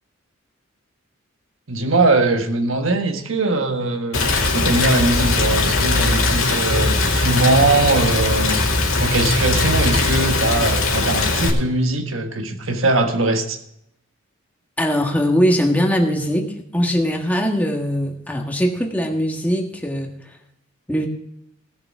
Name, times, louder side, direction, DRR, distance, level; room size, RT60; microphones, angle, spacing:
voice 1, 1.7-8.6 9.0-13.6, right 2 dB, 75° right, 6 dB, 1.4 m, -21 dB
Rain, 4.1-11.5, left 3 dB, 85° left, 2.2 m, -19 dB
voice 2, 14.8-20.1 20.9-21.1, equal, 10° left, 2 dB, 1.5 m, -21 dB
17.0 x 6.8 x 4.8 m, 0.78 s
head